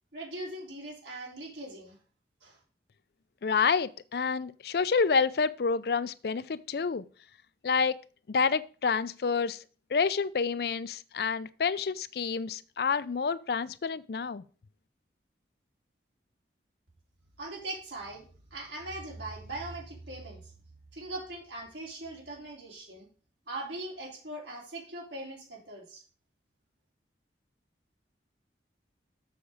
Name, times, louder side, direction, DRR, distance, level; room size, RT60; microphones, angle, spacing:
voice 1, 0.1-2.0 2.4-2.6 17.4-20.5 20.9-23.1 23.5-26.0, right 2 dB, 80° right, 3.2 m, -40 dB
voice 2, 3.4-7.0 7.6-8.0 8.3-9.6 9.9-14.4, left 5 dB, 55° left, 0.4 m, -28 dB
7.1 x 5.9 x 4.9 m
head